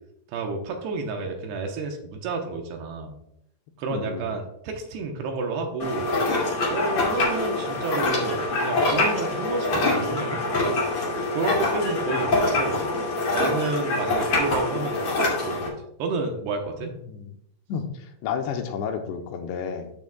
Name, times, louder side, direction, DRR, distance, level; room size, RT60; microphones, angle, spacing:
voice 1, 0.3-3.2 3.8-6.1 6.6-10.4 11.3-12.9 13.3-16.9, right 3 dB, 75° right, 3 dB, 2.9 m, -30 dB
voice 2, 3.9-4.3 17.0-17.4 17.7-19.9, left 6 dB, 80° left, 4 dB, 2.9 m, -31 dB
sound 1, 5.8-15.7, left 2 dB, 40° left, 2.5 m, -25 dB
14.0 x 6.0 x 2.3 m, 0.76 s
omnidirectional pair, 5.2 m